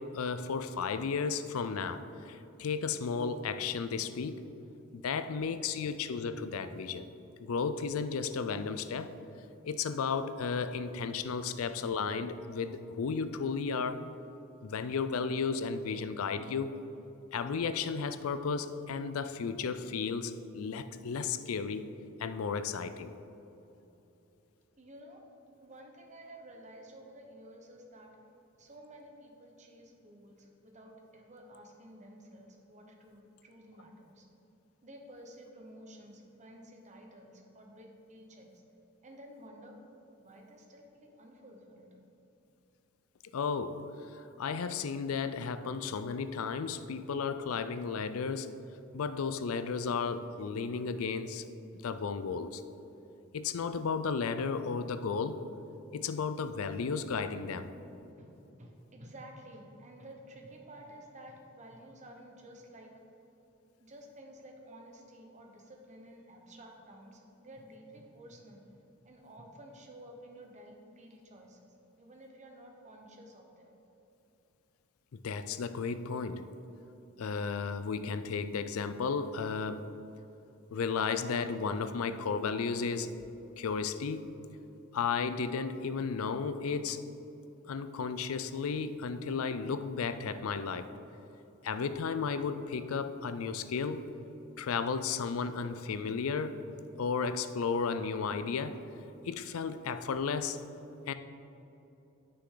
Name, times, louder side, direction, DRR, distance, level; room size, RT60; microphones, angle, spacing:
voice 1, 0.0-4.4 4.9-7.1 7.4-9.1 9.6-14.1 14.6-16.7 17.3-21.8 22.2-23.1 43.3-43.8 44.4-48.5 48.9-51.4 51.8-52.6 53.3-55.4 55.9-57.7 75.1-76.4 77.2-79.9 80.7-83.1 83.6-84.3 84.9-87.0 87.7-90.9 91.6-94.1 94.6-96.6 97.0-98.8 99.2-100.6 101.1-101.2, left 5 dB, 75° left, 11 dB, 0.4 m, -34 dB
voice 2, 24.8-25.2 25.6-28.2 28.6-34.3 34.8-38.6 39.0-39.8 40.2-41.9 57.8-57.9 58.2-62.9 63.8-73.8, right 1 dB, 35° right, 2 dB, 1.0 m, -52 dB
9.7 x 5.9 x 3.9 m, 2.9 s
head